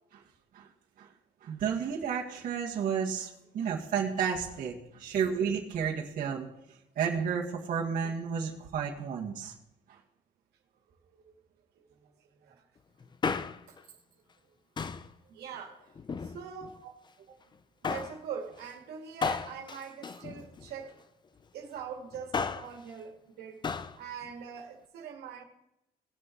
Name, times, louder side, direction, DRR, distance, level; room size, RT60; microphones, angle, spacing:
voice 1, 1.4-6.5 7.0-9.5, right 7 dB, 55° right, 1.8 m, -32 dB
Male speech man speaking, 13.0-13.8 14.8-15.1 15.9-16.7 17.8-18.2 19.2-20.9 22.1-22.8 23.6-24.0 24.2-24.3, left 5 dB, 25° left, 0.6 m, -34 dB
voice 2, 15.3-15.8 16.3-16.8 17.8-20.9 21.5-23.6 24.0-25.4, right 7 dB, 75° right, 2.1 m, -42 dB
18.5 x 6.5 x 4.6 m
cardioid pair, 110°, 17 cm